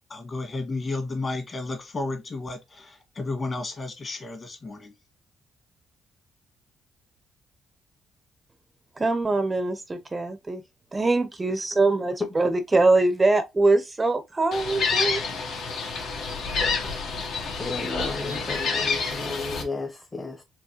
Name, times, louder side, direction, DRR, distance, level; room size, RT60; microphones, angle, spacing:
voice 1, 0.1-4.9, left 3 dB, 40° left, 1.6 m, -32 dB
voice 2, 9.0-10.6 10.9-15.2, right 2 dB, 25° right, 0.5 m, -23 dB
Gull seagull, 14.5-19.6, left 4 dB, 75° left, 1.3 m, -28 dB
voice 3, 17.5-20.4, left 3 dB, 20° left, 0.8 m, -33 dB
4.6 x 3.0 x 3.0 m
cardioid pair, 90°, 0 cm